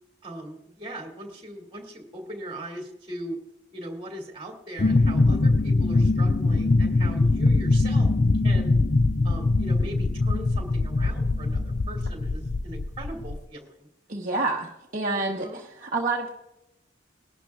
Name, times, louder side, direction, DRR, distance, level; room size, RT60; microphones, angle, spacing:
voice 1, 0.2-3.4 3.7-8.1 8.4-8.8 9.2-13.7 15.1-15.6, right 1 dB, 25° right, 1 dB, 2.4 m, -39 dB
sound 1, 4.8-13.4, left 2 dB, 40° left, 0.4 m, -22 dB
voice 2, 14.1-16.3, right 3 dB, 45° right, -2 dB, 1.1 m, -28 dB
20.5 x 12.0 x 2.4 m, 0.88 s
head